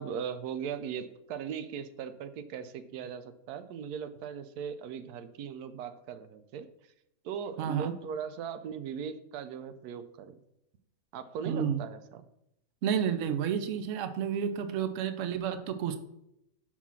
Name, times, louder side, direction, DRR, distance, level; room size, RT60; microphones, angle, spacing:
voice 1, 0.0-6.7 7.2-10.4 11.1-12.2, right 7 dB, 90° right, 11 dB, 1.1 m, -39 dB
voice 2, 7.6-7.9 11.5-11.8 12.8-16.0, right 8 dB, 65° right, 10 dB, 0.9 m, -30 dB
5.6 x 4.8 x 5.6 m, 0.82 s
omnidirectional pair, 1.6 m